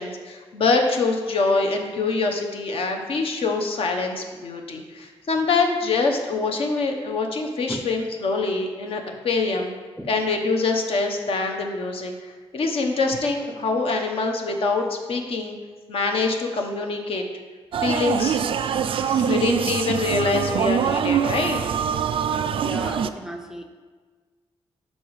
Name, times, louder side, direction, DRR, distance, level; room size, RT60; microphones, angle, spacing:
voice 1, 0.0-9.7 10.1-15.6 15.9-17.3 17.8-21.6, left 3 dB, 65° left, 3 dB, 1.0 m, -25 dB
sound 1, 17.7-23.1, right 8 dB, 60° right, 0.3 m, -24 dB
voice 2, 22.5-23.6, equal, 5° right, 5 dB, 0.5 m, -35 dB
12.0 x 4.2 x 3.2 m, 1.4 s
cardioid pair, 105°, 10 cm